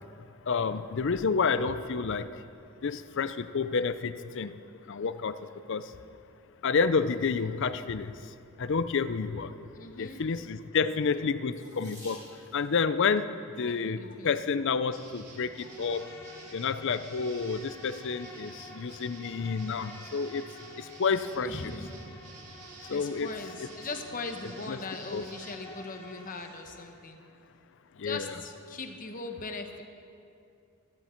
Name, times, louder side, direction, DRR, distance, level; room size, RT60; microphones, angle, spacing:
voice 1, 0.5-2.3 2.8-4.5 4.9-5.4 5.7-5.9 6.6-8.1 8.6-9.5 10.0-12.2 12.5-16.1 16.5-20.5 20.8-21.6 22.9-23.3 24.7-24.8 25.1-25.3 28.0-28.3, left 5 dB, 55° left, 13 dB, 0.5 m, -29 dB
voice 2, 9.7-10.2 13.5-14.4 21.4-21.9 22.9-27.2 28.0-29.8, left 3 dB, 35° left, 5 dB, 1.0 m, -40 dB
Water tap faucet / Sink (filling or washing), 11.5-12.8 13.8-14.2 14.9-15.0 15.3-15.4, equal, 15° right, 4.0 m, -51 dB
sound 1, 14.9-25.6, right 3 dB, 85° right, 2.0 m, -51 dB
Insect, 15.4-26.9, left 1 dB, 15° left, 2.4 m, -50 dB
15.0 x 14.0 x 4.4 m, 2.5 s
head